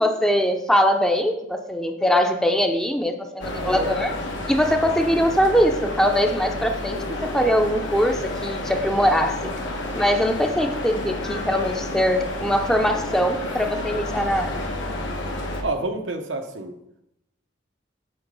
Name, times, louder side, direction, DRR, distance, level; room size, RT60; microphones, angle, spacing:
voice 1, 0.0-4.1 4.5-9.5 9.9-14.6, equal, 5° left, 4 dB, 0.5 m, -22 dB
sound 1, 3.4-15.6, left 1 dB, 85° left, 1.2 m, -30 dB
voice 2, 3.5-3.9 15.6-16.8, right 2 dB, 85° right, 5 dB, 0.9 m, -29 dB
8.0 x 3.8 x 5.3 m, 0.83 s
head